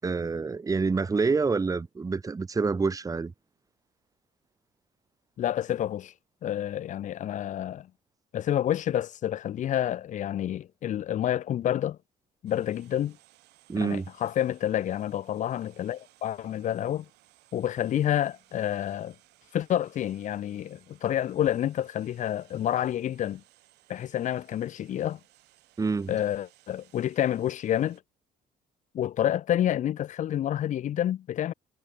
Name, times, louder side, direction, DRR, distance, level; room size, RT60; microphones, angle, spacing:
voice 1, 0.0-3.3 13.7-14.1 25.8-26.1, right 4 dB, 20° right, 1.3 m, -27 dB
voice 2, 5.4-6.1 6.4-7.9 8.3-12.0 12.4-13.2 13.8-17.1 17.5-19.1 19.5-23.4 23.9-25.2 26.1-28.0 28.9-31.5, left 11 dB, 50° left, 0.6 m, -29 dB
sound 1, 12.5-28.0, right 19 dB, 85° right, 6.5 m, -62 dB
cardioid pair, 110°, 17 cm